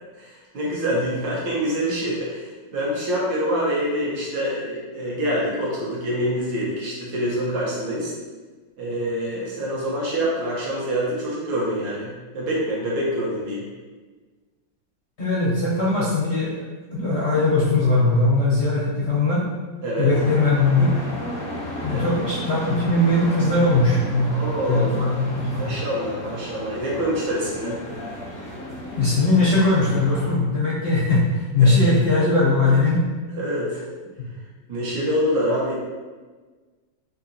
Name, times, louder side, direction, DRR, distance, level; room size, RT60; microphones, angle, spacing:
voice 1, 0.2-8.1 8.8-13.6 19.8-20.1 21.9-22.2 24.3-25.1 25.5-27.8 33.4-33.8 34.7-35.8, equal, 75° right, -6 dB, 1.7 m, -26 dB
voice 2, 15.2-16.6 16.9-19.5 20.0-21.0 21.8-24.4 24.7-25.7 28.9-33.0, left 2 dB, 65° left, -8 dB, 0.6 m, -20 dB
sound 1, 20.1-30.3, equal, 10° left, 0.3 m, -34 dB
3.9 x 2.8 x 2.7 m, 1.3 s
omnidirectional pair, 2.0 m